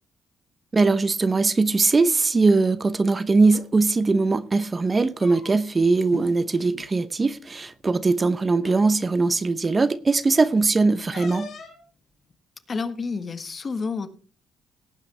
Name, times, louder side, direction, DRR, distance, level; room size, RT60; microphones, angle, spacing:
voice 1, 0.7-11.5, right 3 dB, 30° right, 0.8 m, -21 dB
sound 1, 3.5-3.7 4.9-5.8 6.1-6.3 6.6-6.9 7.8-7.9 8.6-8.8 11.1-11.8, left 4 dB, 55° left, 5.3 m, -40 dB
voice 2, 12.7-14.1, left 4 dB, 40° left, 1.4 m, -29 dB
18.0 x 9.7 x 3.4 m
cardioid pair, 90°, 0 cm